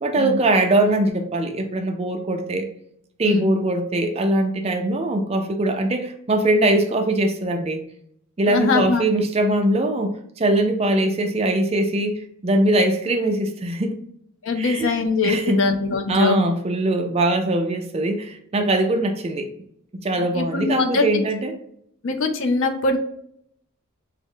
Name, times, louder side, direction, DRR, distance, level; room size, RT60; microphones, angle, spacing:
voice 1, 0.0-2.7 3.2-7.8 8.4-14.0 14.6-15.0 15.2-15.6 16.1-19.5 20.0-21.6, right 1 dB, 30° right, 5 dB, 0.4 m, -21 dB
voice 2, 8.5-9.0 14.4-16.4 20.2-21.1 22.0-23.0, left 3 dB, 65° left, 7 dB, 0.5 m, -22 dB
3.6 x 2.1 x 3.6 m, 0.69 s
head